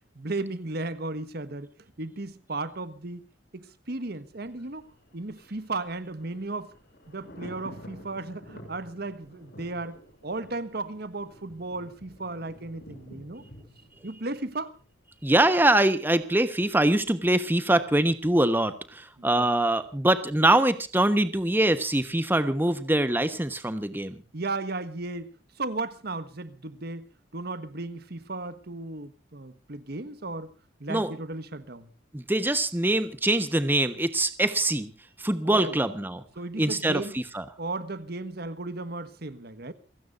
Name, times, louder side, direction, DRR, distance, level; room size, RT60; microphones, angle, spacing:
voice 1, 0.1-1.7 2.0-3.3 3.5-6.7 7.1-10.0 10.2-13.4 14.0-14.8 19.2-19.5 24.3-27.1 27.3-30.5 30.8-31.9 35.4-35.8 36.4-37.1 37.6-39.7, right 2 dB, 55° right, 1.4 m, -35 dB
Thunder, 4.3-15.2 15.5-15.6, equal, 60° left, 6.7 m, -50 dB
voice 2, 15.2-24.2 30.9-31.1 32.1-34.9 35.2-36.2 36.6-37.4, right 1 dB, 10° right, 1.1 m, -23 dB
28.5 x 16.5 x 2.6 m
head